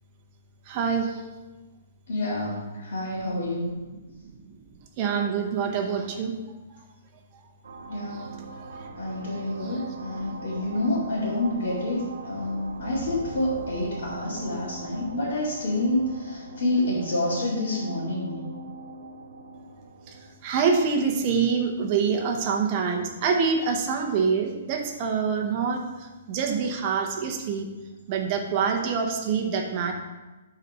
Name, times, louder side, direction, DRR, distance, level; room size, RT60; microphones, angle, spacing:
voice 1, 0.7-1.2 5.0-6.3 8.7-9.0 20.1-20.2 20.4-27.7 28.1-29.9, right 5 dB, 25° right, 2 dB, 0.8 m, -26 dB
voice 2, 2.1-3.7 7.9-8.2 9.0-18.4, left 1 dB, 60° left, -9 dB, 2.3 m, -28 dB
sound 1, 7.6-21.8, right 3 dB, 85° right, 0.9 m, -41 dB
8.0 x 4.2 x 5.4 m, 1.2 s
hypercardioid pair, 175°, 0 cm